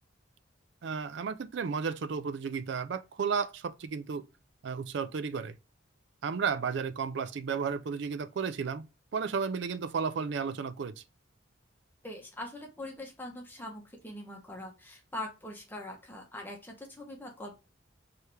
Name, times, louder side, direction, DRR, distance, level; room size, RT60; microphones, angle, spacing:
voice 1, 0.8-4.3 4.6-5.6 6.2-8.9 9.1-11.0, right 5 dB, 60° right, 0.4 m, -33 dB
voice 2, 12.0-17.5, left 1 dB, 10° left, 1.0 m, -42 dB
4.7 x 3.3 x 3.2 m
head